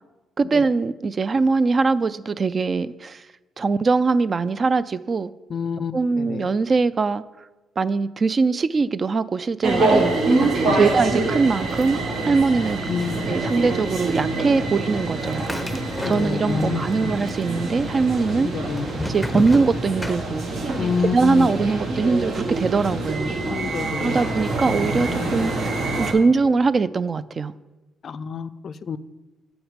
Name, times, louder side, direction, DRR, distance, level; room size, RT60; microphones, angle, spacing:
voice 1, 0.4-3.2 3.6-5.3 5.9-7.2 7.8-10.1 10.7-12.8 13.3-15.5 16.1-18.5 19.0-20.5 21.1-23.4 24.0-27.5, right 4 dB, 40° right, 17 dB, 0.3 m, -22 dB
voice 2, 5.5-6.5 10.0-10.1 10.7-10.9 12.9-13.4 16.0-17.1 18.5-18.9 20.8-21.5 23.5-24.2 28.0-29.0, left 6 dB, 55° left, 15 dB, 0.4 m, -28 dB
sound 1, 9.6-26.1, right 2 dB, 65° right, 1.3 m, -25 dB
sound 2, 15.2-16.7 16.9-17.7 18.3-20.8, left 1 dB, ahead, 0.7 m, -31 dB
7.3 x 6.0 x 5.1 m, 1.1 s
cardioid pair, 90°, 0 cm